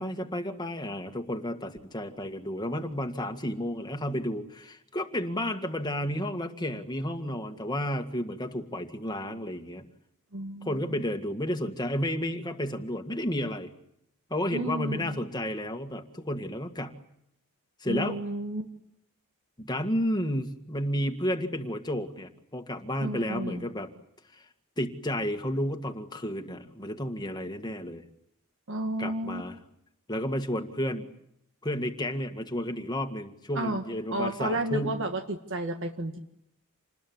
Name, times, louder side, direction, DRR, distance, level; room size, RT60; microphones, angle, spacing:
voice 1, 0.0-9.9 10.6-13.7 14.3-17.0 17.8-18.2 19.6-23.9 24.3-24.4 24.8-28.0 29.0-29.6 30.1-31.1 31.6-35.0, equal, 20° left, 6 dB, 1.9 m, -32 dB
voice 2, 10.3-11.0 14.5-15.2 17.9-18.7 23.0-23.7 28.7-29.4 33.5-33.8 34.1-36.2, right 1 dB, 60° right, 6 dB, 1.7 m, -32 dB
28.0 x 20.5 x 9.5 m, 0.76 s
head